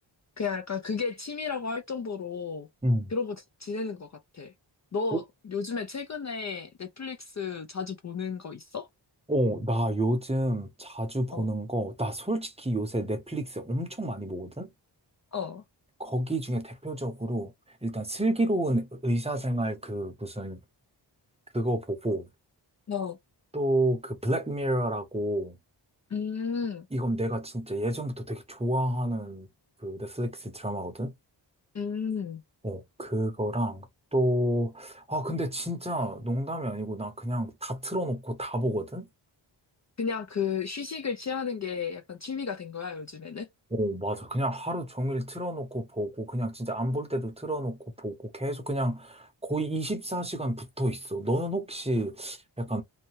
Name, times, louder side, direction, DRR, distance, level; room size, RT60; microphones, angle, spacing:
voice 1, 0.4-2.7 3.1-4.1 4.3-4.5 4.9-8.9 11.3-11.5 15.3-15.6 22.9-23.2 26.1-26.9 31.7-32.4 40.0-43.5, left 5 dB, 40° left, 0.4 m, -33 dB
voice 2, 9.3-14.7 16.0-17.5 17.8-20.6 21.5-22.3 23.5-25.6 26.9-29.5 29.8-31.1 32.6-33.9 34.1-39.1 43.8-52.8, right 1 dB, 15° right, 0.7 m, -30 dB
2.7 x 2.1 x 3.1 m
wide cardioid pair, 90°, 44 cm